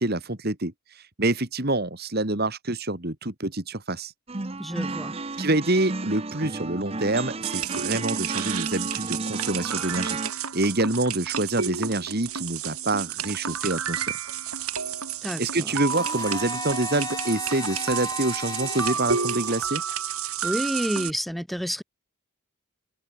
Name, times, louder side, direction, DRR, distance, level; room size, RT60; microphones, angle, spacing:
voice 1, 0.0-4.1 5.4-10.2 10.5-14.1 15.4-19.8, right 2 dB, 45° right, 2.1 m, -27 dB
sound 1, 4.3-10.3, right 3 dB, 25° right, 0.9 m, -33 dB
voice 2, 4.6-5.1 15.2-15.7 20.4-21.8, equal, ahead, 3.1 m, -29 dB
Lots of toys, 7.4-21.1, right 7 dB, 80° right, 3.7 m, -31 dB
Domestic sounds home sounds, 15.9-19.9, left 3 dB, 15° left, 2.6 m, -37 dB
open air
head